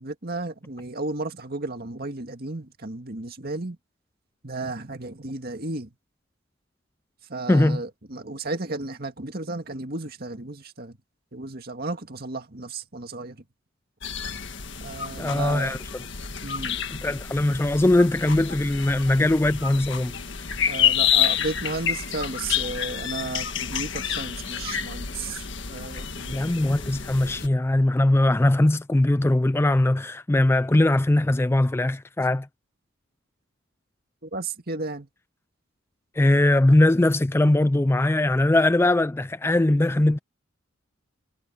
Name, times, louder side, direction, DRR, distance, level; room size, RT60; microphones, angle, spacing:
voice 1, 0.0-3.8 4.4-5.9 7.3-11.0 11.3-13.4 14.8-15.7 16.4-16.8 20.7-26.4 34.2-35.1, right 2 dB, 45° right, 2.0 m, -33 dB
voice 2, 7.5-7.8 15.2-15.8 17.0-20.1 20.4-20.5 26.3-32.5 36.2-40.2, left 1 dB, 10° left, 0.3 m, -20 dB
sound 1, 14.0-27.5, left 9 dB, 60° left, 1.7 m, -29 dB
head